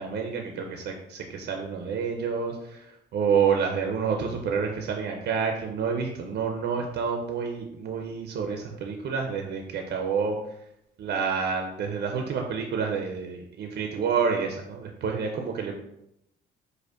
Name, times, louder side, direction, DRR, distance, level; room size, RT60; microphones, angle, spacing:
voice 1, 0.0-10.4 11.0-15.8, right 6 dB, 60° right, 3 dB, 0.5 m, -28 dB
4.9 x 2.1 x 2.4 m, 0.81 s
cardioid pair, 90°, 20 cm